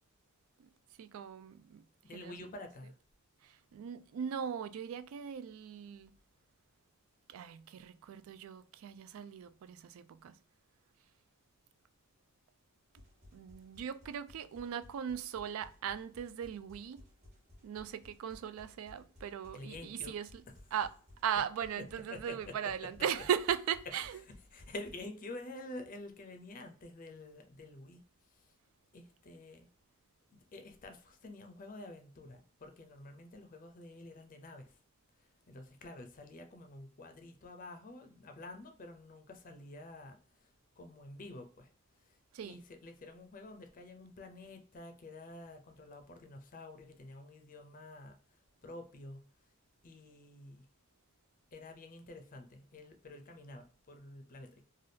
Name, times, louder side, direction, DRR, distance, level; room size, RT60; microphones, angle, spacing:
voice 1, 1.0-1.9 2.1-2.4 3.4-6.1 7.3-10.4 13.3-17.0 17.6-20.3 20.7-20.9 21.2-24.2 42.3-42.6, right 8 dB, 80° right, 0.3 m, -38 dB
voice 2, 2.0-2.9 19.5-20.2 22.1-22.5 24.5-28.5 28.9-29.7 30.3-34.8 35.2-41.7 42.0-42.2 42.4-49.5 49.8-50.7 51.5-54.7, left 2 dB, 40° left, 0.5 m, -49 dB
sound 1, 12.9-25.0, left 1 dB, 35° right, 1.1 m, -59 dB
3.3 x 2.3 x 2.6 m
head